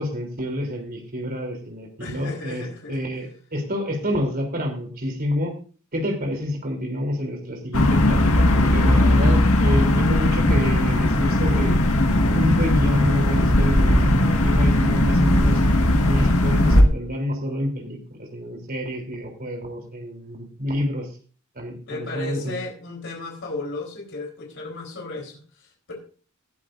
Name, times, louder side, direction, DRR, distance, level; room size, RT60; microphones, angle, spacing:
voice 1, 0.0-5.5 5.9-11.8 12.2-15.6 16.1-21.1 21.6-22.6, left 1 dB, 45° right, 3 dB, 3.4 m, -28 dB
voice 2, 2.0-3.1 21.9-25.9, left 2 dB, 60° left, 0 dB, 4.0 m, -34 dB
sound 1, 7.7-16.8, left 1 dB, 85° left, 1.8 m, -18 dB
18.5 x 11.5 x 2.6 m, 0.39 s
head